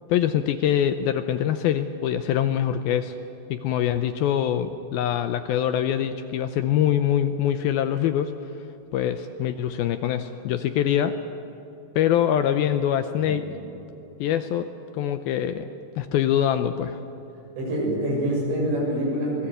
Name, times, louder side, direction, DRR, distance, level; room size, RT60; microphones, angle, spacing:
voice 1, 0.1-3.2 3.5-8.3 8.9-11.2 12.0-13.4 14.2-15.7 16.0-17.0, left 10 dB, 80° left, 9 dB, 2.3 m, -24 dB
voice 2, 17.6-19.5, right 1 dB, 85° right, -2 dB, 9.6 m, -26 dB
26.5 x 20.0 x 8.0 m, 3.0 s
omnidirectional pair, 4.9 m